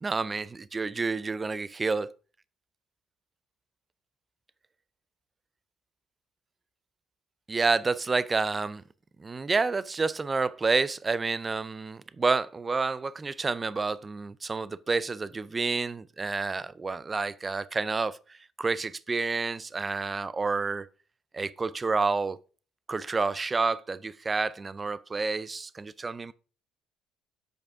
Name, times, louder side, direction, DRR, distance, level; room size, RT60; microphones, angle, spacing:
voice 1, 0.0-2.1 7.5-8.8 9.2-18.2 18.6-20.9 21.3-22.4 22.9-26.3, right 4 dB, 25° right, 0.4 m, -29 dB
7.9 x 4.8 x 4.7 m
cardioid pair, 95°, 0 cm